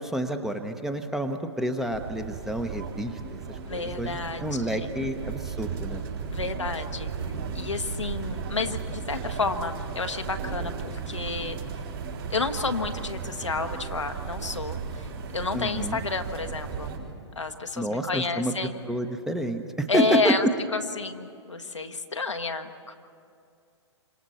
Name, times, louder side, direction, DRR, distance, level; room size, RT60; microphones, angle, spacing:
voice 1, 0.0-3.4 3.7-6.0 15.5-16.0 17.8-18.5 18.9-20.5, right 1 dB, ahead, 6 dB, 1.0 m, -29 dB
sound 1, 1.9-17.0, right 6 dB, 60° right, 6.1 m, -35 dB
voice 2, 3.6-5.0 6.3-7.1 7.5-11.6 12.3-15.1 15.3-16.9 17.4-18.7 19.9-20.5 20.7-23.0, left 4 dB, 80° left, 5 dB, 1.3 m, -30 dB
29.0 x 26.0 x 4.3 m, 2.4 s
figure-of-eight pair, 115°, 15 cm